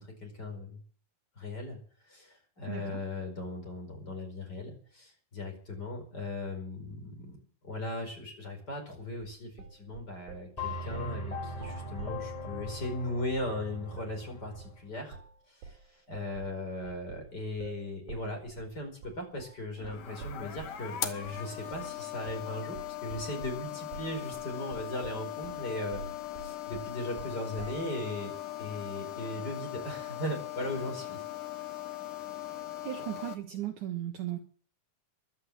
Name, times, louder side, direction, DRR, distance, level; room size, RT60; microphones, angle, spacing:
voice 1, 0.2-0.8 1.4-1.8 2.1-7.4 7.6-15.2 15.5-15.8 16.1-26.0 26.4-31.2, left 1 dB, 25° left, 3 dB, 5.1 m, -38 dB
voice 2, 2.7-3.0 32.8-34.4, right 13 dB, 65° right, 5 dB, 2.5 m, -36 dB
sound 1, 9.2-10.5 10.9-11.2 11.5-12.9 13.3-13.6 13.9-14.2 14.5-14.8 15.1-15.4 15.6-20.9 21.3-21.5 21.7-22.0 22.3-22.5 22.8-27.9, right 5 dB, 80° right, 4.6 m, -47 dB
sound 2, 10.6-14.8, left 1 dB, 10° left, 2.7 m, -39 dB
sound 3, 19.8-33.3, left 13 dB, 65° left, 2.7 m, -40 dB
15.0 x 11.5 x 7.6 m, 0.42 s
omnidirectional pair, 4.3 m